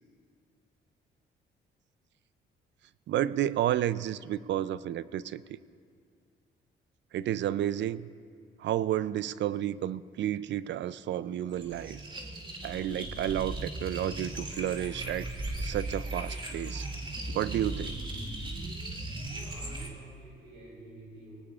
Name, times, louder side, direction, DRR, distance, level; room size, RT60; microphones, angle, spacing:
voice 1, 3.1-5.4 7.1-8.1 8.6-12.0 12.6-15.3 15.6-16.9 17.3-17.9, right 11 dB, 65° right, 17 dB, 0.5 m, -31 dB
sound 1, 11.5-19.9, right 2 dB, 25° right, 3.2 m, -37 dB
voice 2, 19.2-21.4, right 1 dB, 85° right, -8 dB, 4.7 m, -50 dB
25.0 x 18.5 x 2.4 m, 2.3 s
cardioid pair, 90°, 20 cm